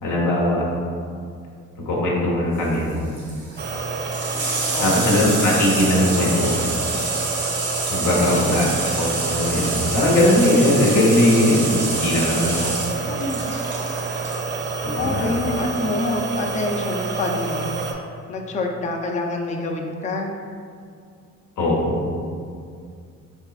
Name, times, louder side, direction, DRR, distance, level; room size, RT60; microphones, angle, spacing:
voice 1, 0.0-0.7 1.8-3.0 4.8-6.8 7.9-8.7 9.0-12.7 13.1-13.2 14.8-15.4 21.6-22.1, left 1 dB, 75° left, -4 dB, 0.9 m, -20 dB
Water tap faucet / Sink (filling or washing), 2.5-14.4 15.7-15.8, right 3 dB, 80° right, 1.0 m, -28 dB
sound 1, 3.6-17.9, right 4 dB, 35° right, 0.5 m, -28 dB
voice 2, 4.7-5.0 8.2-8.5 13.1-13.5 15.0-17.7 18.3-20.4, left 2 dB, 25° left, 1 dB, 0.4 m, -27 dB
3.8 x 3.5 x 2.4 m, 2.3 s
cardioid pair, 90°, 30 cm